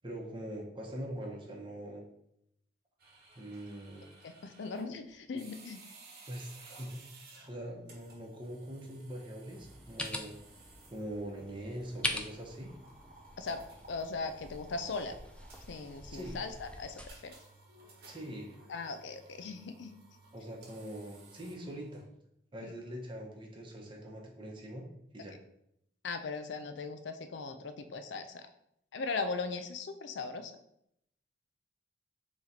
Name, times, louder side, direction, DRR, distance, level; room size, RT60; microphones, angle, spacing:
voice 1, 0.0-2.0 3.4-4.1 6.3-7.0 7.4-10.4 10.9-12.7 16.1-16.4 18.1-18.6 20.3-22.0 22.5-24.9 25.1-25.3, right 1 dB, 25° right, -1 dB, 0.9 m, -43 dB
sound 1, 3.0-22.0, right 3 dB, 55° right, 1.0 m, -57 dB
voice 2, 4.2-5.8 13.4-15.2 15.7-17.4 18.7-20.0 22.6-22.7 26.0-28.5 28.9-30.5, left 4 dB, 80° left, 9 dB, 0.5 m, -39 dB
sound 2, 9.5-17.1, left 1 dB, 5° left, 0.3 m, -43 dB
3.9 x 3.0 x 4.2 m, 0.76 s
head